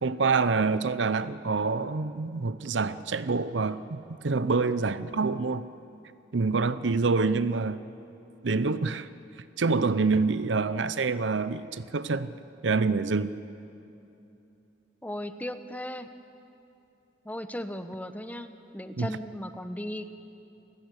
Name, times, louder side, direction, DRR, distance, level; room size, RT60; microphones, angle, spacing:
voice 1, 0.0-5.7 6.3-7.8 8.4-9.1 9.6-12.3 12.6-13.3 19.0-19.1, right 4 dB, 70° right, 0.7 m, -26 dB
voice 2, 15.0-16.1 17.2-20.1, left 1 dB, 10° left, 0.8 m, -36 dB
28.5 x 14.5 x 8.3 m
head